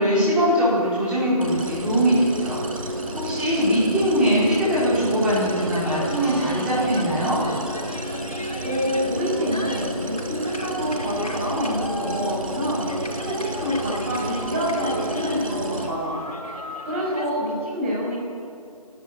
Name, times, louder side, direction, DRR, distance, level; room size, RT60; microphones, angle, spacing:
voice 1, 0.0-7.4, equal, 5° right, -9 dB, 5.1 m, -22 dB
sound 1, 1.4-15.9, right 1 dB, 60° right, 5.9 m, -31 dB
sound 2, 5.3-17.3, left 1 dB, 75° left, 4.9 m, -37 dB
voice 2, 8.6-16.1 16.8-18.1, equal, 20° right, -5 dB, 6.8 m, -27 dB
28.0 x 12.5 x 9.6 m, 2.5 s
figure-of-eight pair, 155°, 20 cm